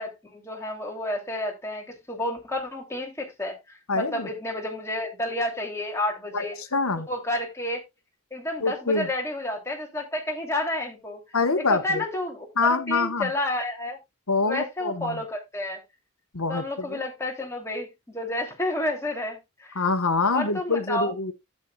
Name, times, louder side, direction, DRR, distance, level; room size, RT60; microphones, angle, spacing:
voice 1, 0.0-6.6 7.1-7.8 8.3-11.2 11.7-14.0 14.4-15.8 16.5-19.8 20.3-21.3, left 1 dB, 15° left, 2.9 m, -30 dB
voice 2, 3.9-4.3 6.3-7.1 8.6-9.1 11.3-12.0 12.6-13.3 14.3-15.2 16.3-17.0 19.7-21.3, left 3 dB, 70° left, 1.3 m, -25 dB
12.0 x 8.8 x 2.3 m
head